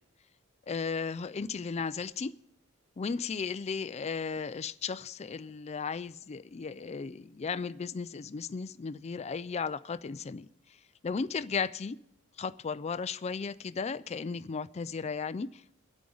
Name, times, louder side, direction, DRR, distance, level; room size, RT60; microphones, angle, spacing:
voice 1, 0.7-2.3 3.0-10.5 11.0-12.0 12.4-15.8, left 5 dB, 30° left, 0.4 m, -35 dB
24.0 x 8.5 x 3.9 m
head